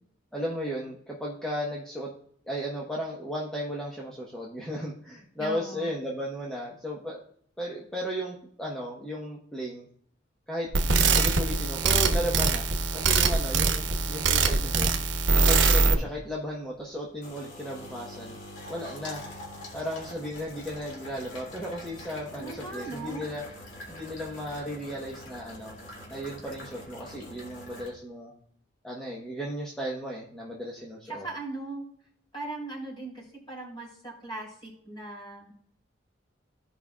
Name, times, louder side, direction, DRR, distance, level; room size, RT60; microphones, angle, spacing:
voice 1, 0.3-2.1 2.5-7.2 7.6-9.9 10.5-10.7 11.1-14.9 15.3-18.4 18.7-19.2 19.7-23.4 23.9-25.8 26.1-28.3 28.8-31.3, equal, 5° left, -5 dB, 1.2 m, -35 dB
voice 2, 5.4-5.9 22.4-23.3 31.0-31.9 32.3-35.5, right 2 dB, 25° left, -3 dB, 3.9 m, -39 dB
sound 1, 10.7-15.9, right 4 dB, 80° right, 1.0 m, -23 dB
sound 2, 16.0-27.9, left 1 dB, 80° left, 3.0 m, -45 dB
15.5 x 5.4 x 2.4 m, 0.63 s
head